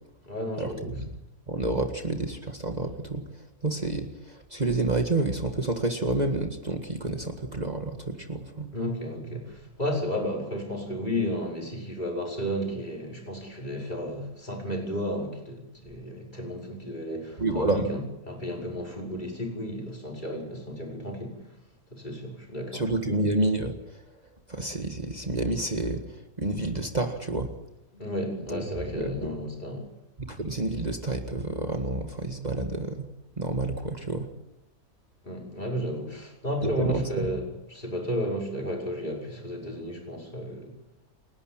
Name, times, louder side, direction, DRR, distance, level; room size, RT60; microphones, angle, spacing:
voice 1, 0.3-1.0 8.7-21.5 21.9-22.9 27.9-29.9 35.2-40.7, equal, 30° left, 0 dB, 5.5 m, -33 dB
voice 2, 1.5-3.2 3.6-4.1 4.5-8.7 17.4-17.8 22.7-23.7 24.5-26.0 26.4-27.5 28.5-28.6 29.0-29.3 30.2-33.1 33.4-34.3 36.6-37.0, right 2 dB, 25° right, 4 dB, 1.9 m, -29 dB
28.5 x 12.5 x 9.0 m, 0.90 s
omnidirectional pair, 1.6 m